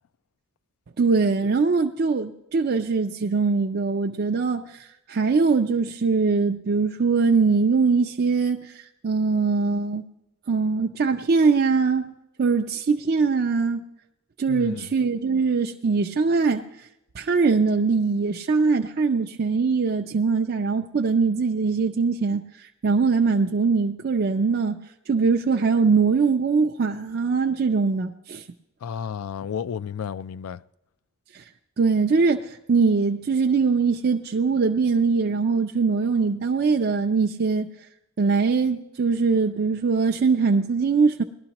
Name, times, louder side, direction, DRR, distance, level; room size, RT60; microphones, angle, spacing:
voice 1, 1.0-10.0 10.5-12.1 12.4-13.8 14.4-16.6 17.2-22.4 22.8-24.8 25.1-28.4 31.3-31.4 31.8-37.7 38.2-41.2, right 4 dB, 45° right, 0.5 m, -22 dB
voice 2, 14.5-14.9 28.8-30.6, left 7 dB, 75° left, 0.4 m, -32 dB
19.0 x 12.0 x 2.9 m
head